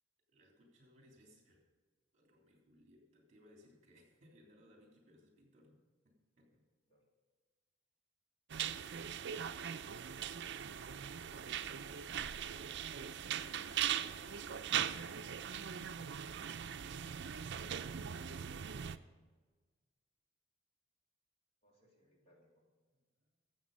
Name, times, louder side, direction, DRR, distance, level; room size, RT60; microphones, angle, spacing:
voice 1, 0.3-1.6 2.1-6.7 11.1-12.0 13.3-14.8 22.0-22.4 23.2-23.3, left 1 dB, 35° right, 0 dB, 3.3 m, -65 dB
sound 1, 8.5-19.0, right 9 dB, 60° right, 0.5 m, -40 dB
voice 2, 21.6-22.7, equal, 30° left, -1 dB, 2.6 m, -72 dB
13.0 x 7.9 x 5.4 m, 1.4 s
head